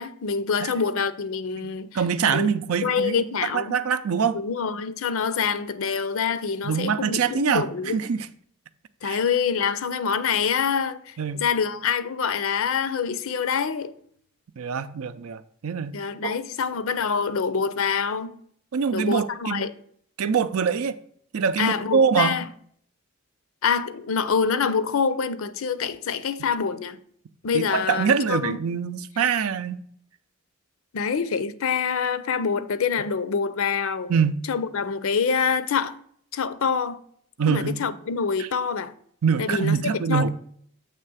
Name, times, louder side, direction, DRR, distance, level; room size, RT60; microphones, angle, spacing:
voice 1, 0.0-2.0 2.3-2.5 2.8-3.8 4.3-8.0 9.0-13.9 15.9-18.3 18.9-19.7 21.6-22.5 23.6-27.0 27.4-28.6 30.9-34.1 34.5-36.0 36.3-37.0 37.5-38.9 39.4-40.3, left 6 dB, 70° left, 0.5 m, -26 dB
voice 2, 1.6-4.4 6.6-8.3 9.0-9.2 11.2-11.4 14.6-15.9 16.2-16.4 18.7-19.7 20.2-21.0 21.3-22.4 27.5-29.8 34.1-34.4 37.4-37.9 38.4-38.5 39.2-40.3, right 6 dB, 85° right, 0.5 m, -24 dB
7.4 x 3.3 x 6.1 m
head